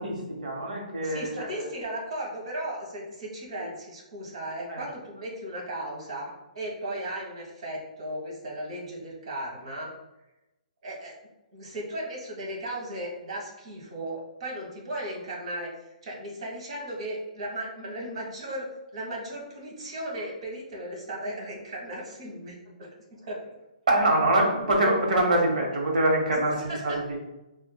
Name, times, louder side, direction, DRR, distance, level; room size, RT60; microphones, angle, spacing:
voice 1, 0.0-1.6 4.7-4.8 23.9-27.2, right 1 dB, 70° right, -1 dB, 1.4 m, -24 dB
voice 2, 1.0-9.9 10.8-11.1 11.5-15.7 16.0-18.7 18.9-22.9 23.2-23.4 26.3-26.4 26.7-27.0, right 1 dB, 45° right, -3 dB, 1.3 m, -36 dB
5.9 x 2.6 x 2.2 m, 0.97 s
hypercardioid pair, 175°, 4 cm